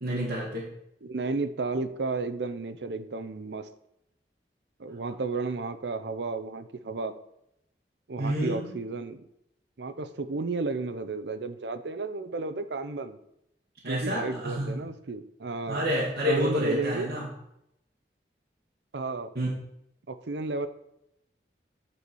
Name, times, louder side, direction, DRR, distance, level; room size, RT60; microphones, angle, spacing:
voice 1, 0.0-0.7 8.2-8.7 13.8-14.7 15.7-17.3 19.4-19.5, equal, 65° right, -7 dB, 1.7 m, -28 dB
voice 2, 1.0-3.7 4.8-7.2 8.1-9.3 9.8-13.2 13.9-15.8 16.3-17.1 18.9-19.3 20.1-20.7, right 3 dB, 85° right, 10 dB, 0.6 m, -32 dB
9.9 x 4.2 x 4.6 m, 0.81 s
head